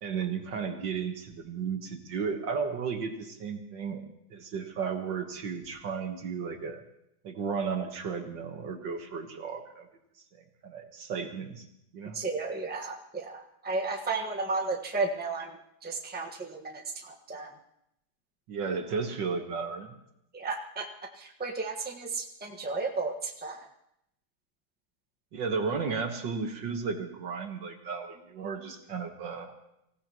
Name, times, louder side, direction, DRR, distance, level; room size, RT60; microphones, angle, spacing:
voice 1, 0.0-4.0 4.3-6.8 7.2-9.9 10.3-11.6 11.9-12.2 18.5-19.9 25.3-29.5, right 5 dB, 65° right, 5 dB, 2.0 m, -34 dB
voice 2, 12.1-17.6 20.3-20.9 21.1-23.7, right 3 dB, 5° right, 0 dB, 1.1 m, -34 dB
25.5 x 16.0 x 3.0 m, 0.79 s
omnidirectional pair, 2.2 m